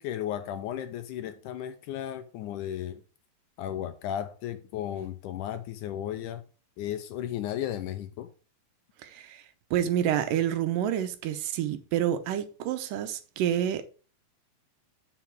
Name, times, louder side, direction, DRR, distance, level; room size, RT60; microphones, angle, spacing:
voice 1, 0.0-3.0 3.6-6.4 6.8-8.3, left 11 dB, 75° left, 2.0 m, -34 dB
voice 2, 9.0-9.4 9.7-13.9, right 10 dB, 80° right, 2.4 m, -28 dB
7.5 x 7.0 x 4.6 m
omnidirectional pair, 4.0 m